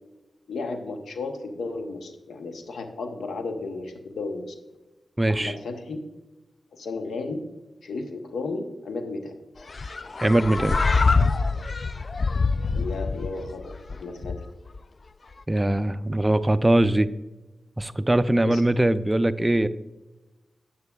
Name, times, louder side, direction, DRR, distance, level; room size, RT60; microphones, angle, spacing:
voice 1, 0.5-4.5 5.3-6.0 6.7-7.4 7.8-9.3 12.7-14.4 18.4-18.6, left 3 dB, 90° left, 6 dB, 0.8 m, -33 dB
voice 2, 5.2-5.5 10.2-10.8 15.5-17.1 17.8-19.7, right 1 dB, 20° right, 13 dB, 0.4 m, -21 dB
sound 1, 9.7-14.8, left 4 dB, 55° left, 0.3 m, -25 dB
9.4 x 8.3 x 2.3 m, 1.1 s
cardioid pair, 45°, 0 cm